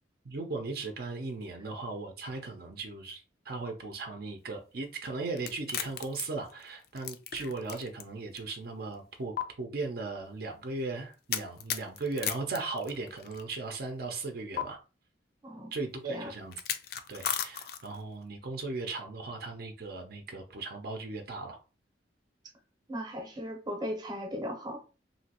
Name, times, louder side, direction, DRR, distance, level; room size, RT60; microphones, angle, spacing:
voice 1, 0.2-14.8 15.7-16.6 17.1-21.6, right 3 dB, 60° right, 0.5 m, -37 dB
sound 1, 5.4-8.0 8.4-8.5 9.4-9.5 11.3-13.4 14.6-14.7 16.5-18.0, left 9 dB, 60° left, 0.4 m, -35 dB
voice 2, 15.4-15.7 16.1-16.3 22.9-24.8, equal, 25° right, 0.8 m, -37 dB
3.0 x 2.8 x 2.9 m
head